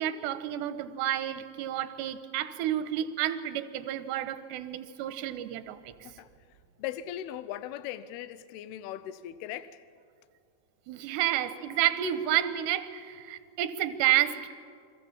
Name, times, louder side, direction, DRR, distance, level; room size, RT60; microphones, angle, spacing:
voice 1, 0.0-5.9 10.9-14.5, right 12 dB, 75° right, 11 dB, 2.8 m, -30 dB
voice 2, 6.8-9.8, left 11 dB, 90° left, 15 dB, 2.2 m, -39 dB
29.5 x 23.5 x 7.2 m, 2.2 s
omnidirectional pair, 5.5 m